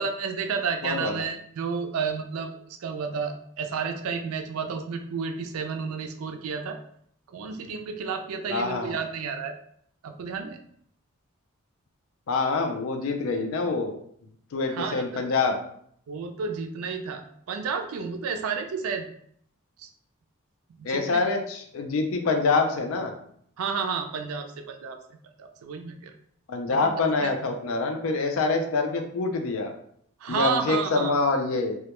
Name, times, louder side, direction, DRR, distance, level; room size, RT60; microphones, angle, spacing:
voice 1, 0.0-6.8 7.3-9.5 10.0-10.6 14.7-15.2 16.1-19.1 19.8-19.9 20.8-21.2 23.6-25.0 25.4-26.1 26.7-27.3 30.2-31.1, right 5 dB, 80° right, 6 dB, 0.3 m, -31 dB
voice 2, 0.8-1.2 8.5-9.0 12.3-13.9 14.5-15.6 20.8-23.1 26.5-29.7 30.3-31.8, left 3 dB, 70° left, 4 dB, 0.4 m, -26 dB
2.2 x 2.1 x 2.8 m, 0.66 s
head